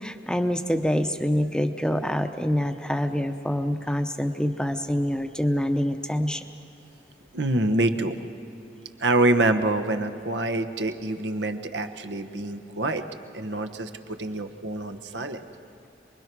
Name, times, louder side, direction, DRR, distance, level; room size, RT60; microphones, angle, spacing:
voice 1, 0.0-6.4, equal, 5° left, 7 dB, 0.8 m, -26 dB
voice 2, 7.3-8.2 9.0-13.0 13.3-13.9 14.2-15.4, right 2 dB, 90° right, 7 dB, 1.2 m, -26 dB
27.5 x 21.5 x 6.1 m, 2.9 s
head